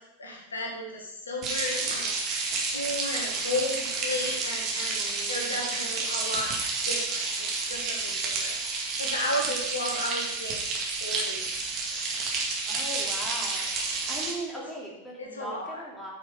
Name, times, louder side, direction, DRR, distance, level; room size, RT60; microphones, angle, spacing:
voice 1, 0.2-5.0 5.3-6.5 6.8-10.6 11.0-11.4 11.9-12.0 15.2-15.9, left 1 dB, 70° left, 0 dB, 1.9 m, -34 dB
sound 1, 1.4-14.3, right 4 dB, 35° right, 2.3 m, -30 dB
voice 2, 4.9-5.8 12.7-13.7 14.1-16.1, right 1 dB, ahead, -5 dB, 3.2 m, -39 dB
9.1 x 6.3 x 5.5 m, 0.92 s
figure-of-eight pair, 90°, 0 cm